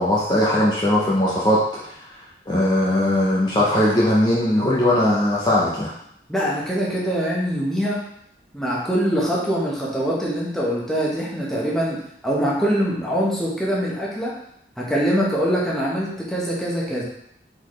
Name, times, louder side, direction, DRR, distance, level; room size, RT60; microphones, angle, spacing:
voice 1, 0.0-1.9 2.5-5.9, left 1 dB, 25° left, -6 dB, 0.7 m, -19 dB
voice 2, 6.3-8.0 8.5-12.0 12.2-14.3 14.8-17.0, equal, ahead, -6 dB, 1.0 m, -23 dB
4.1 x 4.0 x 3.2 m, 0.72 s
head